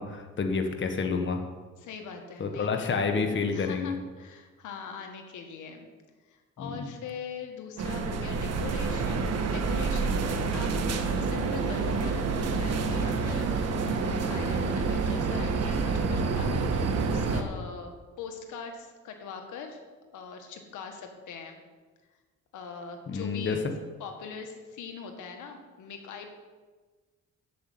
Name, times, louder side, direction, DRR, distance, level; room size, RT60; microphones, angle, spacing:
voice 1, 0.0-1.4 2.4-3.9 6.6-6.9 23.1-23.6, left 4 dB, 40° left, 5 dB, 1.3 m, -29 dB
voice 2, 1.8-2.9 3.4-5.9 6.3-19.8 20.1-21.6 22.5-23.6 24.0-26.3, left 5 dB, 80° left, 5 dB, 1.6 m, -42 dB
sound 1, 7.8-17.4, right 4 dB, 55° right, 1.3 m, -28 dB
8.1 x 7.5 x 8.5 m, 1.4 s
cardioid pair, 90°, 30 cm